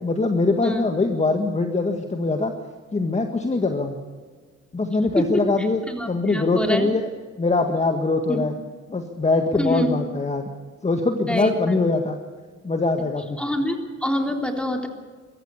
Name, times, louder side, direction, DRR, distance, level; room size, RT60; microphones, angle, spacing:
voice 1, 0.0-2.5 2.9-4.0 4.7-5.8 6.1-7.0 7.4-8.5 8.9-10.5 10.8-12.2 12.6-13.4, left 3 dB, 20° left, 5 dB, 1.8 m, -22 dB
voice 2, 5.2-6.9 8.3-8.4 9.5-10.0 11.3-11.8 13.4-14.9, equal, 5° left, 3 dB, 3.7 m, -25 dB
23.0 x 14.0 x 8.4 m, 1.5 s
cardioid pair, 90°, 30 cm